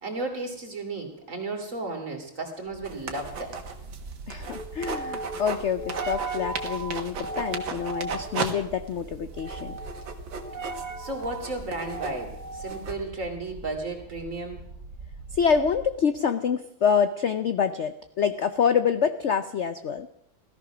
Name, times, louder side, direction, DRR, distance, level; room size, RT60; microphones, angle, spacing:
voice 1, 0.0-3.6 11.0-14.6, right 2 dB, 40° right, 3 dB, 3.2 m, -34 dB
sound 1, 2.7-16.0, right 2 dB, 55° right, 2.2 m, -38 dB
sound 2, 2.8-5.6 5.9-8.5 8.9-9.0 9.4-12.9, right 5 dB, 75° right, 2.2 m, -35 dB
voice 2, 4.3-9.8 15.3-20.1, left 7 dB, 70° left, 11 dB, 0.6 m, -26 dB
17.0 x 14.0 x 6.1 m, 0.77 s
omnidirectional pair, 2.1 m